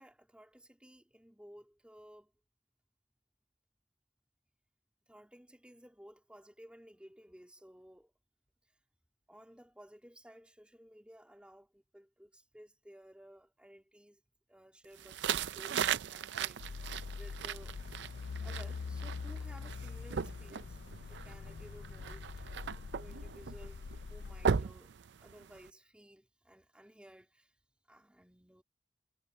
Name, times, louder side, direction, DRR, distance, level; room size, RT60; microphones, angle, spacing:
voice 1, 0.0-2.3 5.1-8.1 9.3-14.2 14.5-17.8 18.4-20.8 21.1-22.6 22.9-24.9 25.2-27.5 27.9-28.6, equal, 5° right, 2.1 m, -56 dB
sound 1, 15.0-25.7, right 7 dB, 90° right, 0.5 m, -38 dB
sound 2, 16.6-24.6, left 5 dB, 65° left, 0.4 m, -44 dB
head